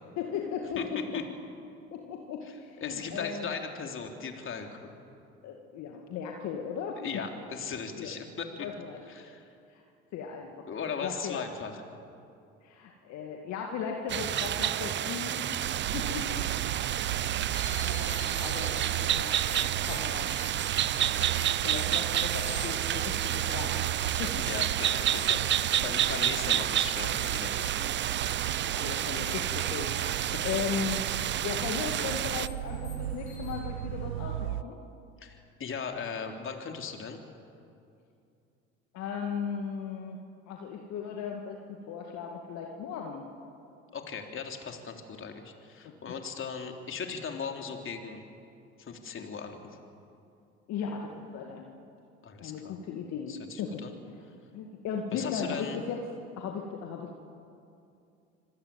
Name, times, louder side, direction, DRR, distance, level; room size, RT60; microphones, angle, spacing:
voice 1, 0.2-1.2 1.9-3.5 5.4-7.2 7.9-8.1 8.6-9.0 9.7-9.8 10.1-10.7 11.0-11.4 12.6-15.4 15.9-16.5 17.8-19.4 19.8-20.3 21.2-21.3 21.6-23.9 24.2-24.3 28.7-31.0 31.4-34.8 38.9-40.2 40.5-43.3 45.8-45.9 50.7-51.6 52.4-53.8 54.5-56.0 56.4-57.2, left 7 dB, 60° left, 1 dB, 2.3 m, -37 dB
voice 2, 2.8-4.9 7.0-8.7 9.1-9.5 10.7-11.8 24.3-27.9 30.3-30.4 35.2-37.2 43.9-48.2 48.8-49.6 52.2-52.7 53.3-53.9 55.1-55.8, left 6 dB, 40° left, 3 dB, 3.6 m, -38 dB
sound 1, 14.1-32.5, right 11 dB, 35° right, 0.6 m, -30 dB
sound 2, 15.6-34.6, right 14 dB, 90° right, 0.5 m, -37 dB
sound 3, 17.5-33.5, left 6 dB, 85° left, 7.5 m, -48 dB
25.5 x 17.5 x 9.0 m, 2.5 s
hypercardioid pair, 65°, 31 cm